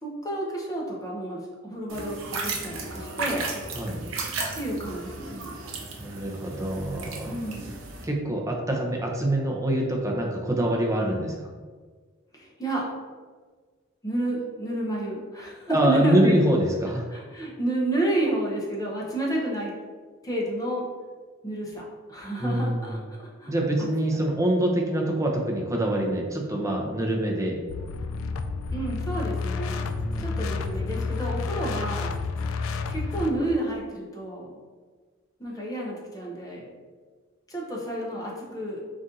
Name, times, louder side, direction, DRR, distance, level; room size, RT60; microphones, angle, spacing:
voice 1, 0.0-3.5 4.5-5.5 7.2-7.8 12.3-12.9 14.0-16.4 17.1-19.7 20.2-20.9 21.4-21.8 22.1-23.5 23.8-23.9 28.7-29.9 30.2-32.2 32.9-34.5 35.4-36.8 37.5-38.8, right 1 dB, 15° left, -3 dB, 0.8 m, -30 dB
sound 1, 1.9-8.0, right 3 dB, 70° right, 0.7 m, -35 dB
voice 2, 6.0-7.4 8.0-11.3 15.7-17.1 22.4-23.0 23.5-27.6 30.0-30.4, right 1 dB, 15° right, 0 dB, 0.6 m, -25 dB
sound 2, 27.7-33.3, left 4 dB, 70° left, 0.3 m, -30 dB
4.1 x 2.5 x 3.7 m, 1.4 s
head